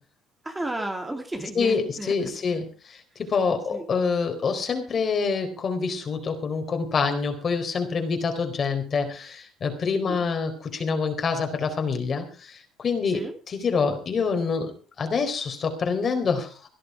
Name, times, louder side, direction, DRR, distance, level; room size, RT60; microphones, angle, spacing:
voice 1, 0.4-2.1 2.5-2.6 3.7-3.9 10.0-10.2 13.1-13.3, right 1 dB, 10° right, 4 dB, 2.5 m, -33 dB
voice 2, 1.6-14.7 15.0-16.7, left 5 dB, 40° left, 6 dB, 4.1 m, -26 dB
17.0 x 11.5 x 4.8 m, 0.38 s
cardioid pair, 115°, 0 cm